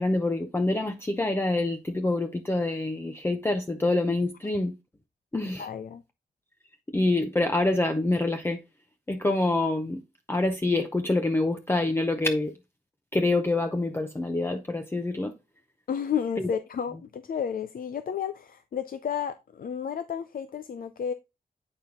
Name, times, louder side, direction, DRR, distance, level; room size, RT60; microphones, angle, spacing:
voice 1, 0.0-4.7 5.3-5.7 6.9-8.6 9.1-10.0 10.3-12.5 13.1-15.4 16.4-16.5, left 2 dB, 15° left, 0.7 m, -26 dB
voice 2, 5.6-6.0 15.9-21.1, left 8 dB, 70° left, 0.5 m, -32 dB
8.7 x 4.5 x 3.7 m
wide cardioid pair, 135°, 15 cm